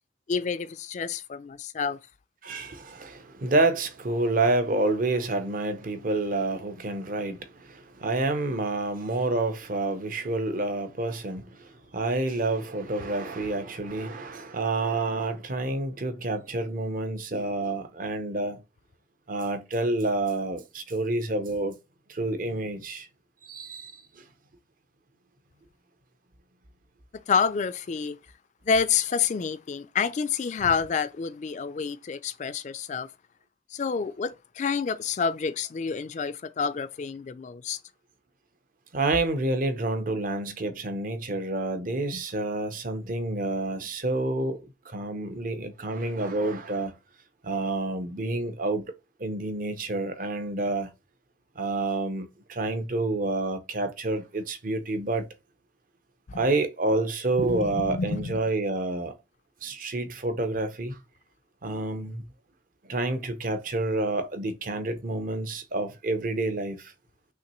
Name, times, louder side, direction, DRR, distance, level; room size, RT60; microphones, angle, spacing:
voice 1, 0.3-2.0 27.3-28.2 28.7-33.1 33.7-37.8 42.1-42.2 56.3-56.4 57.4-58.4 61.6-61.8, left 6 dB, 40° left, 0.3 m, -28 dB
voice 2, 2.4-18.6 19.3-21.8 22.1-23.1 23.4-24.2 38.9-46.9 47.4-48.9 49.2-50.9 51.6-55.3 56.3-59.2 59.6-61.0 61.6-62.2 62.8-66.9, right 2 dB, 45° right, 0.7 m, -28 dB
5.8 x 2.9 x 3.0 m
head